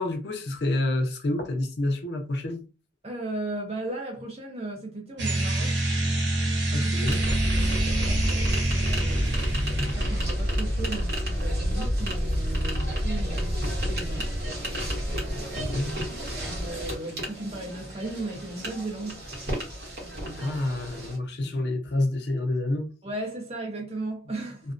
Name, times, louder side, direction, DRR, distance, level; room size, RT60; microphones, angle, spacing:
voice 1, 0.0-2.6 6.7-7.2 15.6-16.0 20.4-22.9 24.6-24.7, left 1 dB, 70° left, 0.6 m, -28 dB
voice 2, 3.0-5.8 6.8-6.9 7.5-14.3 15.1-15.7 16.5-19.2 20.0-20.6 21.4-21.6 23.0-24.7, right 2 dB, 35° right, 0.7 m, -36 dB
sound 1, 5.2-10.3, right 2 dB, 90° right, 0.8 m, -27 dB
sound 2, 7.0-21.2, equal, 55° right, 1.0 m, -29 dB
2.5 x 2.1 x 2.4 m
head